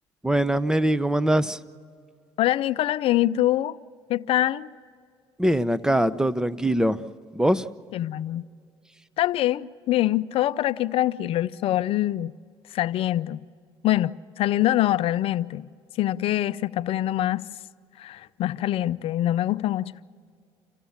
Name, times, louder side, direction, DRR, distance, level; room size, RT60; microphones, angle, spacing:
voice 1, 0.2-1.6 5.4-7.0 7.3-7.7, right 1 dB, 5° right, 0.8 m, -22 dB
voice 2, 2.4-3.8 4.1-4.7 7.9-8.4 9.2-12.3 12.7-13.4 13.8-14.1 14.4-15.7 16.0-17.4 18.0-19.9, left 14 dB, 65° left, 0.5 m, -24 dB
28.0 x 15.5 x 7.2 m
supercardioid pair, 75°, 10 cm